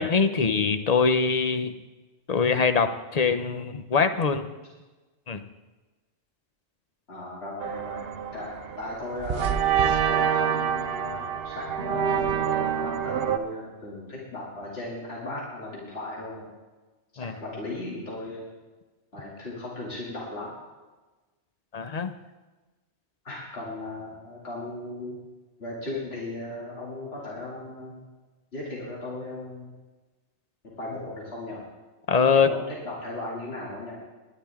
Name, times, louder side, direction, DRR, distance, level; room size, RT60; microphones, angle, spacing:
voice 1, 0.0-1.7 2.3-4.5 5.3-5.4 17.2-17.3 21.7-22.1 32.1-32.5, left 5 dB, 40° left, 9 dB, 0.8 m, -23 dB
voice 2, 7.1-16.5 17.2-18.4 19.1-20.5 23.2-25.2 25.6-28.1 28.5-29.7 30.6-31.6 32.3-33.9, left 2 dB, 60° left, -5 dB, 3.0 m, -37 dB
sound 1, 7.6-13.4, right 8 dB, 60° right, 0.9 m, -26 dB
20.0 x 11.0 x 3.6 m, 1.2 s
omnidirectional pair, 1.2 m